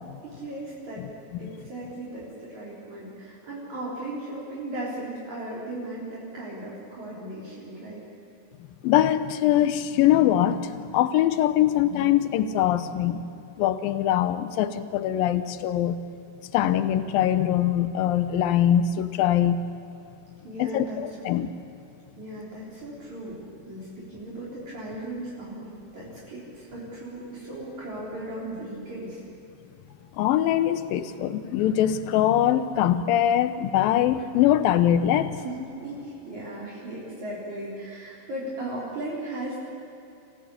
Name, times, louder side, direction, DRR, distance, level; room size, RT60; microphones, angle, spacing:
voice 1, 0.2-1.1 1.4-8.0 20.4-21.0 22.2-23.4 23.7-29.2 35.4-39.6, right 1 dB, 50° right, -7 dB, 5.2 m, -37 dB
voice 2, 8.8-13.2 13.6-16.0 16.4-19.6 20.6-21.5 30.2-35.4, left 11 dB, 75° left, 11 dB, 2.5 m, -23 dB
27.0 x 15.5 x 8.5 m, 2.8 s
omnidirectional pair, 4.3 m